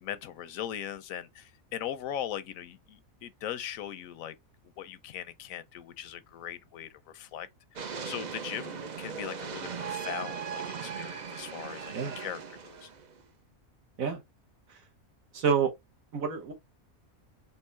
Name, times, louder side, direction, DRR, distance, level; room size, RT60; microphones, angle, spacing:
voice 1, 0.0-4.3 4.8-7.5 7.9-12.9, left 10 dB, 80° left, 1.0 m, -39 dB
sound 1, 7.8-13.2, right 6 dB, 55° right, 0.5 m, -38 dB
voice 2, 15.3-15.7 16.1-16.5, right 6 dB, 75° right, 1.6 m, -28 dB
4.6 x 2.8 x 3.3 m
omnidirectional pair, 1.5 m